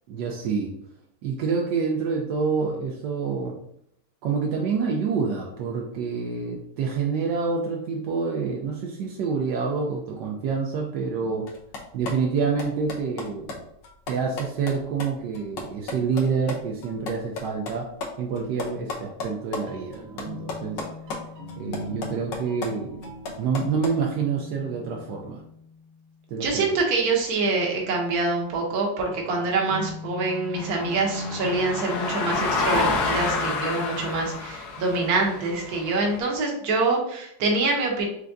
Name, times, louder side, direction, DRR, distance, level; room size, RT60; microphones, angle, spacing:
voice 1, 0.1-0.7 1.2-3.5 4.2-11.5 11.9-13.6 14.1-17.9 18.2-20.8 21.6-23.0 23.4-25.4 26.3-26.7, right 5 dB, 80° right, -1 dB, 1.2 m, -27 dB
sound 1, 11.5-16.5 16.8-19.6 19.9-21.2 21.5-24.0, left 3 dB, 85° left, 1.5 m, -34 dB
sound 2, 19.5-26.1 28.0-34.5, left 2 dB, 35° right, 1.0 m, -40 dB
voice 2, 26.4-38.1, right 3 dB, 60° right, 0 dB, 1.3 m, -25 dB
sound 3, 30.5-36.2, left 4 dB, 70° left, 1.2 m, -29 dB
4.7 x 3.3 x 2.6 m, 0.72 s
omnidirectional pair, 1.9 m